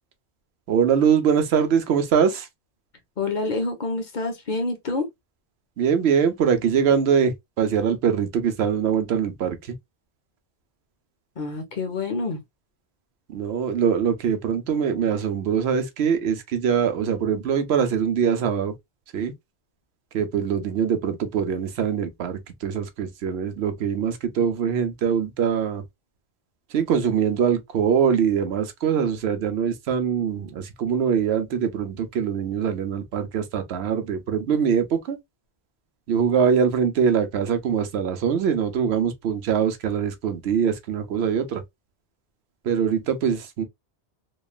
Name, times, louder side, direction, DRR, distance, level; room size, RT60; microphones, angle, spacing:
voice 1, 0.7-2.5 5.8-9.7 13.3-18.7 19.1-19.3 20.1-25.8 26.7-35.2 36.1-41.6 42.6-43.6, right 7 dB, 75° right, 0.9 m, -23 dB
voice 2, 3.2-5.1 11.4-12.4, left 3 dB, 50° left, 0.7 m, -27 dB
3.1 x 2.2 x 2.2 m
omnidirectional pair, 1.1 m